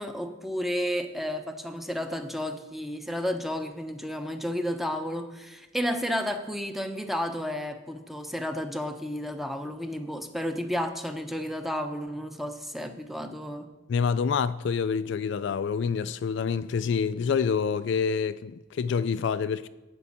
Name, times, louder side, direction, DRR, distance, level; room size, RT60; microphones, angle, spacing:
voice 1, 0.0-13.7, equal, ahead, 0.7 m, -32 dB
voice 2, 13.9-19.7, left 6 dB, 60° left, 0.3 m, -27 dB
11.0 x 5.3 x 8.6 m
head